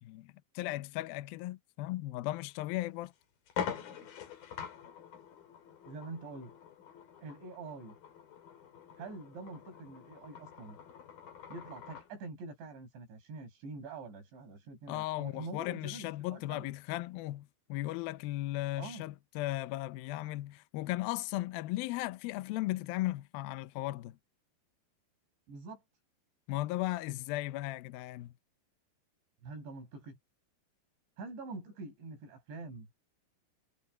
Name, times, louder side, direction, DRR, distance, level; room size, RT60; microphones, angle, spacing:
voice 1, 0.0-3.1 14.9-24.2 26.5-28.3, left 17 dB, 75° left, 2.2 m, -36 dB
sound 1, 2.5-2.6 3.0-3.1 3.5-12.1, left 8 dB, 60° left, 4.1 m, -45 dB
voice 2, 5.9-6.5 7.2-8.0 9.0-10.8 11.5-16.7 18.8-19.1 25.5-25.8 29.4-30.2 31.2-32.9, right 3 dB, 90° right, 9.3 m, -45 dB
omnidirectional pair, 5.0 m